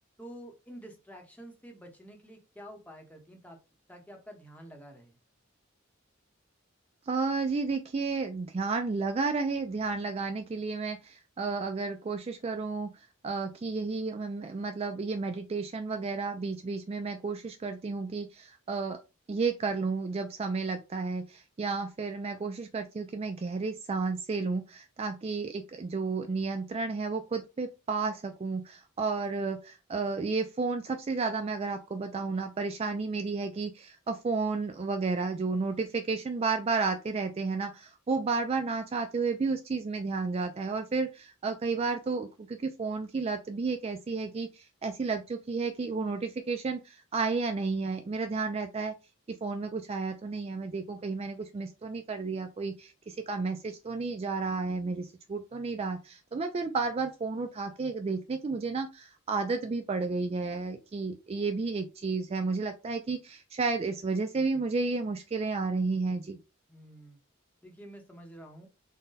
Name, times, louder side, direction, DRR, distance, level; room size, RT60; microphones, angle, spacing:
voice 1, 0.2-3.6 3.9-5.2 66.7-67.2 67.6-68.7, equal, 5° left, 2 dB, 0.8 m, -48 dB
voice 2, 7.1-12.9 13.2-19.0 19.3-48.9 49.3-66.4, right 4 dB, 30° right, 6 dB, 0.3 m, -32 dB
3.8 x 2.2 x 3.9 m, 0.28 s
head